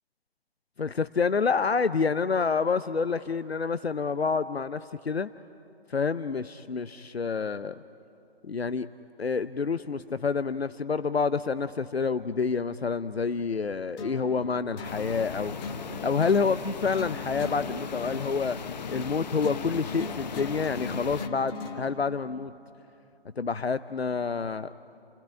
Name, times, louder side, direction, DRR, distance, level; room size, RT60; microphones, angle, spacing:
voice 1, 0.8-5.3 5.9-7.8 8.4-8.9 9.2-15.6 16.0-18.6 18.9-22.5 23.4-24.7, left 5 dB, 85° left, 14 dB, 0.7 m, -28 dB
sound 1, 14.0-22.0, left 3 dB, 15° left, 1.6 m, -40 dB
sound 2, 14.8-21.3, left 6 dB, 45° left, 1.1 m, -38 dB
29.5 x 17.0 x 10.0 m, 2.8 s
figure-of-eight pair, 140°, 30 cm